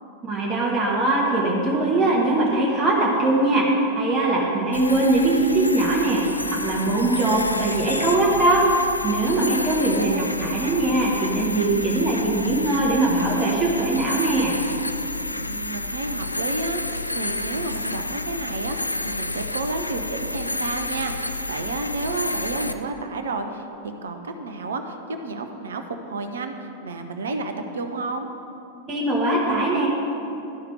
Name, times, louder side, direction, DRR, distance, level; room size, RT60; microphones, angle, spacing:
voice 1, 0.2-3.7 4.0-8.6 9.0-14.5 28.9-29.9, right 2 dB, 20° right, -4 dB, 1.5 m, -21 dB
sound 1, 4.7-22.7, left 2 dB, 85° left, 0.3 m, -30 dB
voice 2, 10.0-10.3 15.3-16.8 17.1-18.8 19.0-28.3, right 3 dB, 65° right, 6 dB, 0.6 m, -31 dB
12.0 x 4.9 x 4.7 m, 2.8 s
figure-of-eight pair, 90°, 0 cm